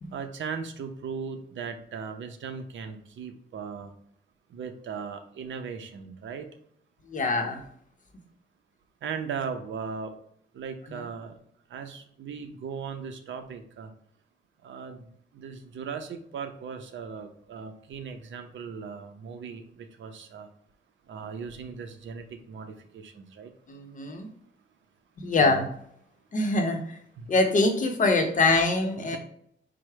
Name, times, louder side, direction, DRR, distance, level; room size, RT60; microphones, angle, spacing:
voice 1, 0.1-3.9 4.5-6.5 9.0-10.1 10.5-11.4 11.7-13.9 14.6-20.5 21.1-23.5 25.4-25.6 27.2-27.3 29.1-29.2, right 6 dB, 70° right, 7 dB, 0.6 m, -38 dB
voice 2, 7.1-7.6 10.9-11.0 23.7-24.3 25.2-25.7 26.3-27.0 27.3-29.2, left 3 dB, 40° left, 4 dB, 0.7 m, -24 dB
4.7 x 2.1 x 4.6 m, 0.67 s
wide cardioid pair, 135°, 20 cm